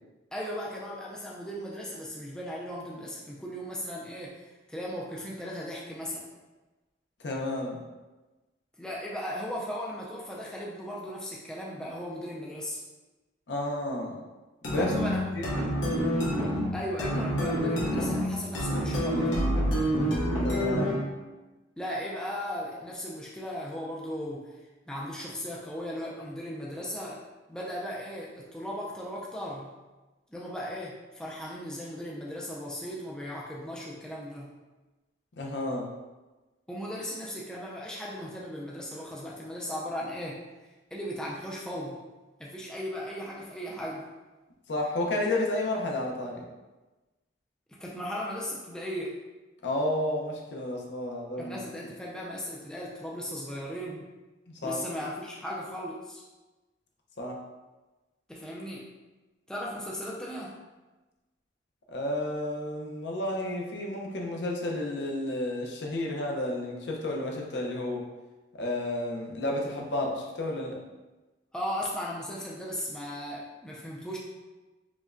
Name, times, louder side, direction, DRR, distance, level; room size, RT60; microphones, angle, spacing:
voice 1, 0.3-6.3 8.8-12.8 14.8-15.4 16.7-19.4 21.8-24.5 24.9-27.2 27.5-29.7 30.3-34.5 36.7-40.4 40.9-42.0 42.4-44.1 47.8-49.2 51.4-54.1 54.6-56.2 58.3-58.9 59.5-60.6 71.5-74.2, equal, 5° left, -4 dB, 0.3 m, -37 dB
voice 2, 7.2-7.8 13.5-14.2 14.7-14.9 15.3-15.5 20.4-21.0 35.4-35.9 44.7-46.4 49.6-51.6 54.5-54.8 57.2-57.4 61.9-68.0 68.5-70.8, left 1 dB, 70° left, -1 dB, 0.6 m, -31 dB
sound 1, 14.6-21.1, equal, 90° left, 1.0 m, -27 dB
4.9 x 2.2 x 2.5 m, 1.2 s
head